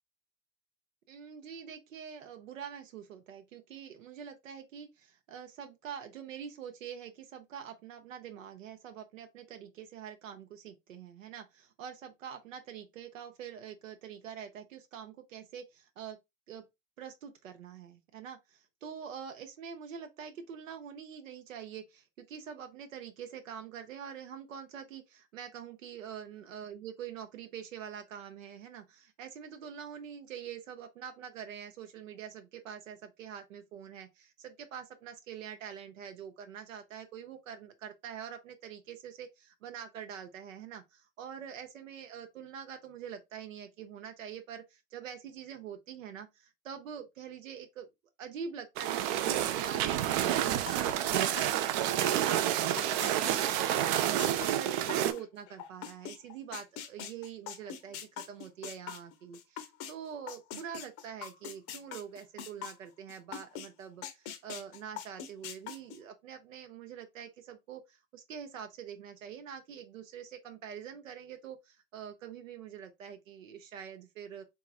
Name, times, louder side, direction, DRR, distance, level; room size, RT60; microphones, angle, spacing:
voice 1, 1.1-16.2 16.5-16.6 17.0-47.9 48.2-74.5, right 8 dB, 80° right, 0.7 m, -45 dB
sound 1, 48.8-55.1, right 11 dB, 35° right, 0.4 m, -29 dB
sound 2, 50.7-52.4 52.8-59.9 60.3-63.7 64.0-66.0, left 9 dB, 40° left, 0.7 m, -42 dB
3.6 x 3.0 x 2.3 m
hypercardioid pair, 100°, 39 cm